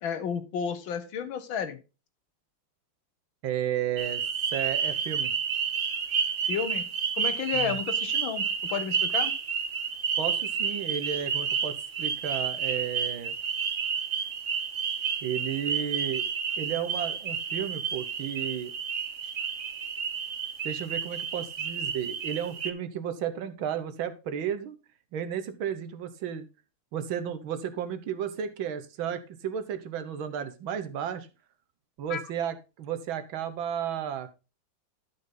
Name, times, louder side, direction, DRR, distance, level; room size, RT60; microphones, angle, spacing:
voice 1, 0.0-1.8 6.4-6.8 7.2-9.3 32.1-32.2, left 7 dB, 70° left, 11 dB, 1.8 m, -32 dB
voice 2, 3.4-4.2 4.5-5.3 7.5-7.8 10.2-13.4 15.2-16.3 16.6-18.7 20.6-24.8 25.1-26.5 26.9-31.3 32.0-34.3, right 9 dB, 75° right, 10 dB, 1.8 m, -33 dB
sound 1, 4.0-22.7, right 6 dB, 45° right, 1.1 m, -30 dB
12.0 x 5.5 x 3.8 m, 0.30 s
omnidirectional pair, 2.3 m